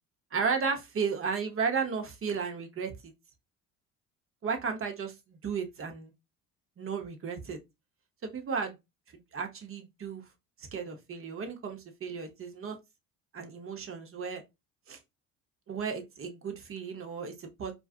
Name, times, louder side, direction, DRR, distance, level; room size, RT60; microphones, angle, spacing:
voice 1, 0.3-3.1 4.4-6.1 6.8-7.6 8.2-8.8 9.3-10.2 10.7-12.8 13.3-14.4 14.9-15.0 15.7-17.7, right 5 dB, 35° right, 0.8 m, -34 dB
2.5 x 2.3 x 2.4 m
supercardioid pair, 70°, 37 cm